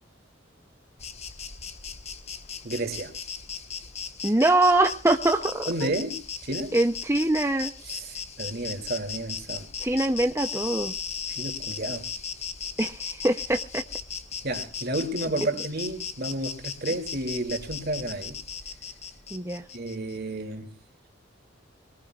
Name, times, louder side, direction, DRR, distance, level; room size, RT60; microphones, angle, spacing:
Insect, 1.0-20.2, left 6 dB, 35° left, 1.3 m, -37 dB
voice 1, 2.6-3.1 5.7-6.8 7.8-9.7 11.3-12.1 14.4-18.4 19.7-20.7, right 2 dB, 55° right, 2.7 m, -31 dB
voice 2, 4.2-5.9 6.7-7.7 9.8-10.9 12.8-13.8 19.3-19.6, right 2 dB, 15° right, 0.7 m, -23 dB
23.0 x 19.5 x 2.4 m
head